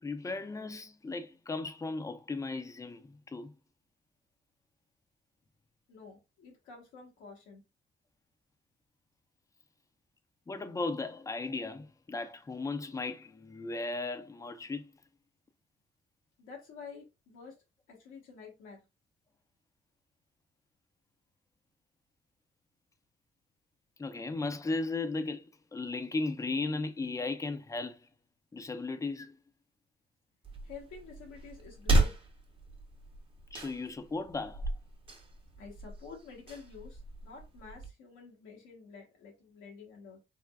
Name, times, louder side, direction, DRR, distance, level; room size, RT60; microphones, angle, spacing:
voice 1, 0.0-3.5 10.5-14.8 24.0-25.5 25.7-28.0 28.5-29.3 33.5-34.6, left 3 dB, 15° left, 0.4 m, -36 dB
voice 2, 5.9-7.6 16.4-17.6 17.9-18.8 30.6-32.2 35.6-40.2, left 5 dB, 90° left, 1.0 m, -49 dB
sound 1, 30.4-37.9, right 1 dB, 25° right, 0.8 m, -34 dB
3.5 x 2.1 x 2.3 m
cardioid pair, 90°, 20 cm